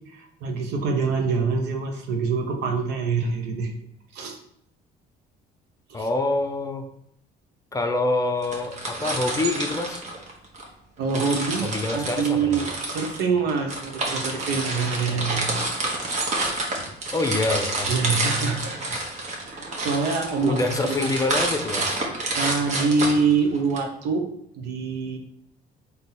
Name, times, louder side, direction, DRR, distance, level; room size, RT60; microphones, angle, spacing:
voice 1, 0.1-3.7 4.1-4.4 5.9-6.1 11.0-15.6 17.9-19.0 19.5-21.1 22.3-24.3 24.6-25.2, right 4 dB, 85° right, 3 dB, 0.8 m, -25 dB
voice 2, 5.9-6.9 7.7-10.0 11.6-12.5 17.1-18.0 20.4-22.0, left 2 dB, 20° left, 5 dB, 0.5 m, -26 dB
sound 1, 8.4-10.7 11.1-23.8, right 2 dB, 45° right, 1.0 m, -29 dB
4.0 x 2.7 x 3.9 m, 0.73 s
cardioid pair, 110°, 17 cm